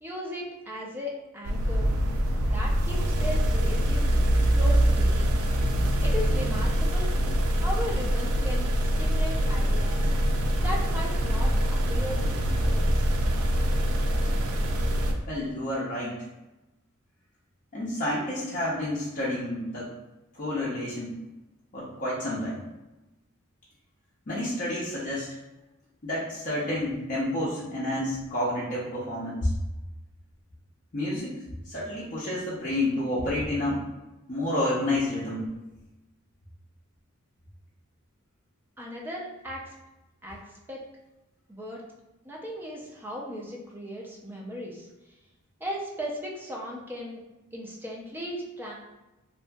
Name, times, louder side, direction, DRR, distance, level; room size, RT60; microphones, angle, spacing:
voice 1, 0.0-1.9 2.5-4.1 4.5-5.3 6.0-7.1 7.5-10.1 10.6-13.0 38.8-39.7 40.2-40.8 41.5-41.8 42.2-44.9 45.6-47.2 47.5-48.7, equal, 10° right, -2 dB, 0.4 m, -37 dB
sound 1, 1.4-15.1, equal, 80° right, 0.4 m, -24 dB
voice 2, 15.3-16.2 17.7-19.9 20.3-21.2 21.7-22.6 24.3-25.3 26.0-29.5 30.9-31.4 31.7-33.8 34.3-35.4, left 1 dB, 40° left, -8 dB, 0.5 m, -29 dB
2.7 x 2.5 x 2.2 m, 1.0 s
head